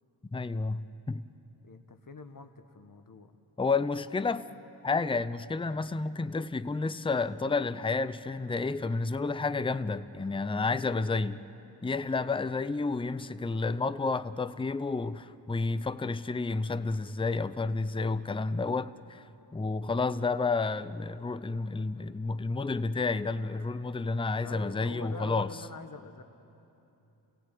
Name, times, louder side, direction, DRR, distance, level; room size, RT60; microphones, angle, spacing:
voice 1, 0.3-1.2 3.6-4.5 4.8-11.4 11.8-19.2 19.5-25.5, left 3 dB, 10° left, 0.6 m, -30 dB
voice 2, 1.6-3.3 12.4-12.7 24.4-26.2, left 4 dB, 40° left, 1.6 m, -45 dB
28.5 x 16.5 x 8.5 m
cardioid pair, 65°, 50 cm